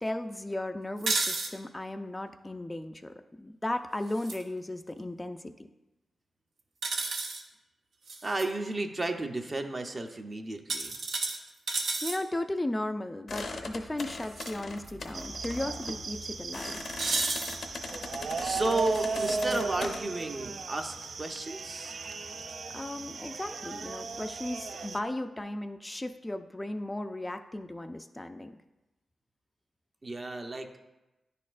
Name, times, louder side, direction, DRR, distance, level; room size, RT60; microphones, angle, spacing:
voice 1, 0.0-5.5 12.0-16.8 22.7-28.6, left 1 dB, 20° left, 7 dB, 0.4 m, -36 dB
sound 1, 1.0-1.5 4.1-4.4 6.8-7.4 8.1-8.4 10.7-12.2 14.2-14.5 14.9-15.0 17.0-17.6 18.9-19.6, right 3 dB, 85° right, 0.7 m, -32 dB
voice 2, 8.2-10.9 18.4-22.0 30.0-30.8, right 2 dB, 40° right, 5 dB, 0.7 m, -33 dB
sound 2, 13.3-20.0, left 3 dB, 65° left, 0.7 m, -40 dB
sound 3, 15.1-25.0, right 4 dB, 70° right, 0.4 m, -36 dB
9.9 x 4.2 x 2.5 m, 1.0 s
cardioid pair, 50°, 0 cm